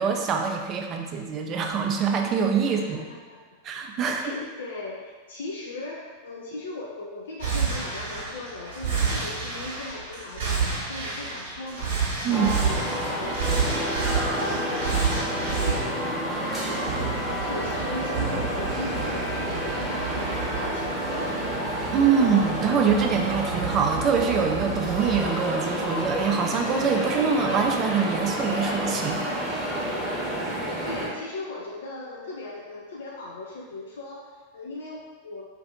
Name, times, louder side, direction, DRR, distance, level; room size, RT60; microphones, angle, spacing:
voice 1, 0.0-3.0 3.6-4.3 12.2-12.5 21.9-29.2, right 6 dB, 30° right, 2 dB, 0.4 m, -24 dB
voice 2, 2.6-3.5 4.0-21.4 30.5-35.4, left 2 dB, 60° left, -2 dB, 0.3 m, -39 dB
sound 1, 7.4-25.4, right 5 dB, 55° right, 0.9 m, -31 dB
sound 2, 12.3-31.1, equal, 5° right, 0.8 m, -29 dB
2.6 x 2.5 x 3.7 m, 1.4 s
figure-of-eight pair, 90°, 0 cm